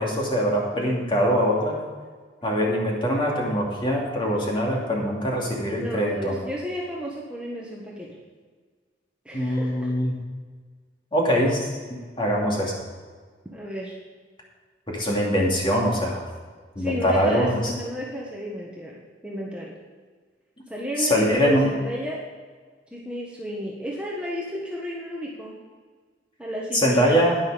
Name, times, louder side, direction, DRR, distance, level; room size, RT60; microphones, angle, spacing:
voice 1, 0.0-1.8 2.4-6.4 9.3-10.2 11.1-11.7 12.2-12.7 14.9-16.2 16.8-17.7 21.0-21.7 26.7-27.4, equal, 30° left, -2 dB, 2.7 m, -23 dB
voice 2, 5.8-8.2 9.2-10.0 13.5-14.0 16.8-19.7 20.7-22.2 22.9-25.5 26.4-27.3, equal, 5° right, -4 dB, 1.4 m, -32 dB
10.5 x 10.5 x 5.2 m, 1.5 s
head